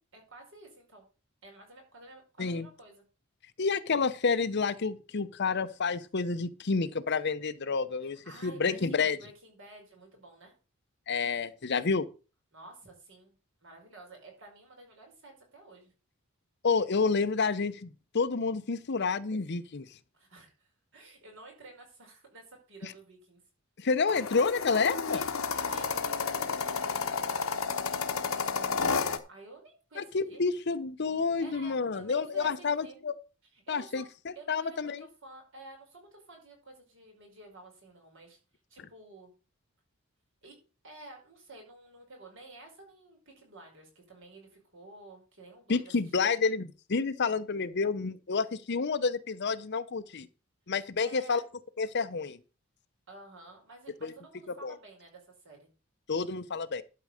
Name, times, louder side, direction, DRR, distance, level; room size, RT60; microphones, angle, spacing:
voice 1, 0.1-1.1 1.4-3.0 8.0-10.5 12.5-13.3 13.6-15.9 20.1-23.4 24.6-30.4 31.4-33.0 33.5-34.0 34.4-38.4 38.7-39.3 40.4-40.6 40.8-45.8 51.0-51.5 53.1-55.7, right 2 dB, 65° right, 5.1 m, -51 dB
voice 2, 3.6-9.2 11.1-12.1 16.6-19.9 22.8-22.9 23.8-25.2 30.0-33.1 33.7-35.0 45.7-50.3 50.7-51.4 51.8-52.4 54.0-54.1 54.6-54.7 56.1-56.8, left 4 dB, 55° left, 0.7 m, -29 dB
sound 1, 24.1-29.2, left 5 dB, 85° left, 1.2 m, -31 dB
11.5 x 4.7 x 6.4 m
head